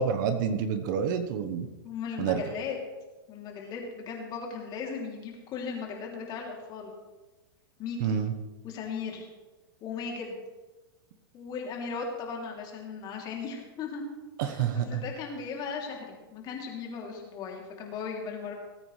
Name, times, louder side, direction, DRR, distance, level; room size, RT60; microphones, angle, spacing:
voice 1, 0.0-1.7 2.2-2.4 8.0-8.3 14.4-15.0, right 7 dB, 55° right, 9 dB, 1.1 m, -28 dB
voice 2, 1.8-2.7 3.3-6.9 7.8-8.2 8.6-9.3 9.8-10.4 11.3-14.0 14.6-18.5, left 5 dB, 35° left, 0 dB, 2.9 m, -37 dB
18.5 x 8.8 x 3.3 m, 1.2 s
hypercardioid pair, 120°, 12 cm